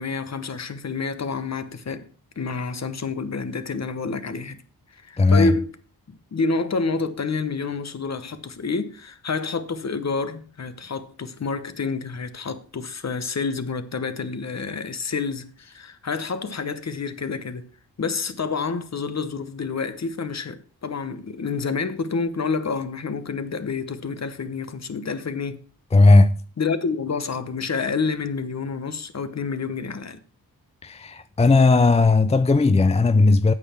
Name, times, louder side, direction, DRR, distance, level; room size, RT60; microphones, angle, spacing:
voice 1, 0.0-2.1 2.4-4.6 4.9-5.7 6.1-17.7 18.0-25.6 26.6-30.2, left 4 dB, 45° left, 1.0 m, -28 dB
voice 2, 5.2-5.5 25.9-26.3 30.8-33.5, left 3 dB, 20° left, 0.4 m, -16 dB
8.6 x 6.7 x 5.7 m
wide cardioid pair, 85°, 38 cm